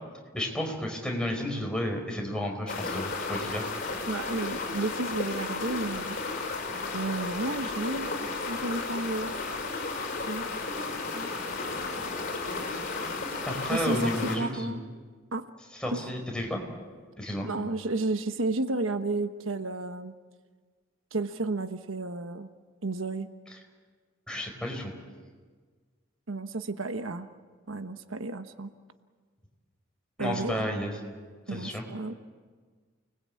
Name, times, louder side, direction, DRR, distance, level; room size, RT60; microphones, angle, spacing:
voice 1, 0.3-3.7 13.4-14.8 15.7-16.6 17.2-17.5 24.3-24.9 30.2-30.9 31.5-31.8, left 1 dB, 5° left, 1 dB, 4.6 m, -32 dB
sound 1, 2.7-14.4, left 3 dB, 45° left, 5.0 m, -33 dB
voice 2, 4.0-6.2 6.9-8.1 8.5-9.3 10.3-10.5 11.1-11.3 13.7-14.9 15.3-15.5 15.9-16.0 17.4-20.1 21.1-22.5 22.8-23.3 26.3-27.3 27.7-28.7 30.2-30.6 31.5-32.1, right 2 dB, 90° right, 9 dB, 1.2 m, -32 dB
29.5 x 20.5 x 8.5 m, 1.5 s
head